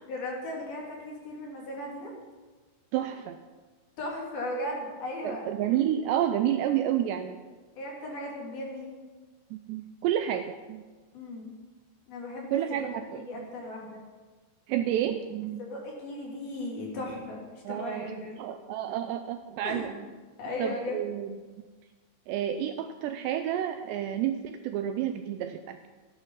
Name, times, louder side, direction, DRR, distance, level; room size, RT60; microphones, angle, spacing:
voice 1, 0.1-2.1 4.0-5.5 7.8-8.9 11.1-11.5 12.1-12.6 13.1-14.0 15.6-17.4 17.7-18.4 19.6-19.9 20.4-21.0, left 1 dB, 55° left, -2 dB, 4.8 m, -36 dB
voice 2, 2.9-3.4 5.2-7.4 9.5-10.8 12.5-13.3 14.7-15.7 17.7-20.1 20.6-21.7 22.3-25.8, right 10 dB, 85° right, 7 dB, 2.5 m, -30 dB
16.0 x 11.5 x 5.7 m, 1.3 s
omnidirectional pair, 5.5 m